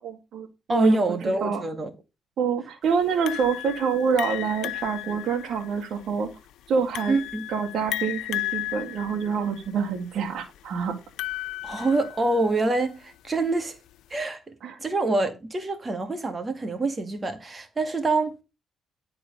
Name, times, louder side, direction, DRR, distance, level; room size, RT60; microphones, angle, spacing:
voice 1, 0.0-1.0 1.4-1.6 2.4-6.3 6.7-7.2 7.5-10.9 14.6-14.8, right 6 dB, 70° right, 2.1 m, -27 dB
voice 2, 0.7-1.9 7.1-7.4 11.6-13.8 14.1-14.4 14.8-18.4, right 2 dB, 30° right, 2.3 m, -25 dB
sound 1, 3.3-12.5, left 16 dB, 85° left, 0.5 m, -34 dB
11.5 x 4.8 x 6.8 m
cardioid pair, 90°, 0 cm